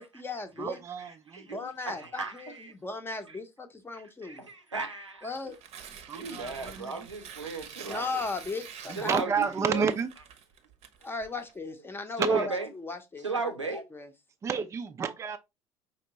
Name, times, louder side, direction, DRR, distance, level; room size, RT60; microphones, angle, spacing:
voice 1, 0.0-0.8 1.5-4.4 5.2-5.5 7.9-9.4 11.0-13.4 13.7-14.1, left 3 dB, 15° left, 0.8 m, -37 dB
voice 2, 0.6-1.5 6.1-7.1 8.9-10.1 12.2-12.5 14.4-15.4, right 6 dB, 20° right, 0.4 m, -30 dB
voice 3, 1.3-2.7 3.3-3.4 3.9-5.3 6.1-8.2 9.0-9.3 9.7-9.9 12.2-12.7 13.2-13.8, right 3 dB, 90° right, 0.7 m, -35 dB
Tearing, 5.3-11.5, right 8 dB, 45° right, 0.8 m, -47 dB
5.1 x 2.9 x 2.8 m
figure-of-eight pair, 65°, 15 cm